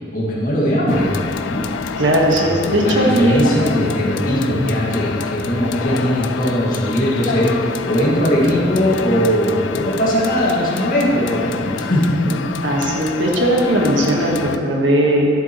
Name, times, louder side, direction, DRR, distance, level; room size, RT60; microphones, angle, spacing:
voice 1, 0.1-1.2 1.5-1.6 2.3-12.4, equal, 45° left, -5 dB, 1.8 m, -19 dB
sound 1, 0.9-14.6, left 6 dB, 70° left, 0.3 m, -28 dB
voice 2, 2.0-3.5 12.6-15.3, right 1 dB, 70° right, -1 dB, 1.3 m, -17 dB
11.0 x 7.8 x 3.0 m, 2.6 s
head